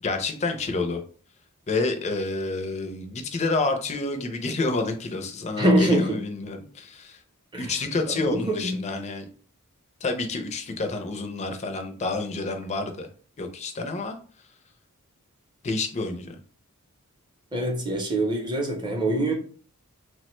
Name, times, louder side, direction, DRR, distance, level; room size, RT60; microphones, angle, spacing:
voice 1, 0.0-1.0 1.7-7.2 7.6-9.3 10.0-13.1 13.4-14.2 15.6-16.4, left 3 dB, 30° left, 6 dB, 0.4 m, -29 dB
voice 2, 5.6-6.2 7.5-7.7 8.2-8.7 17.5-19.3, right 1 dB, 20° right, 1 dB, 0.6 m, -24 dB
3.1 x 2.1 x 3.0 m, 0.43 s
head